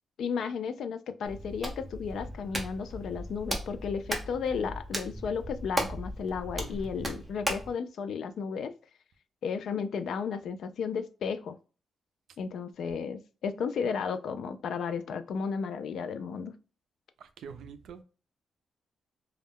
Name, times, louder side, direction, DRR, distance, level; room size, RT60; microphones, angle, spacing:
voice 1, 0.2-8.7 9.4-11.6 12.4-16.5, left 6 dB, 70° left, 0.3 m, -33 dB
Hands, 1.3-7.7, right 1 dB, 10° right, 0.6 m, -36 dB
voice 2, 17.2-18.0, right 6 dB, 80° right, 0.4 m, -46 dB
2.2 x 2.1 x 3.3 m
wide cardioid pair, 155°, 0 cm